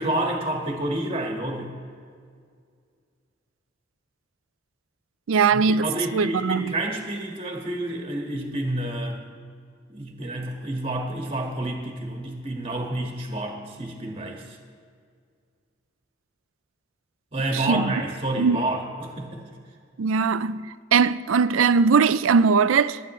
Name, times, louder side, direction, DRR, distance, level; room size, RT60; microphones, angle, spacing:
voice 1, 0.0-1.7 5.5-9.2 9.9-14.4 17.3-19.4, right 1 dB, 30° right, 1.7 m, -29 dB
voice 2, 5.3-6.7 17.5-17.9 18.4-18.6 20.0-23.0, right 5 dB, 85° right, 0.4 m, -20 dB
27.0 x 9.1 x 3.1 m
head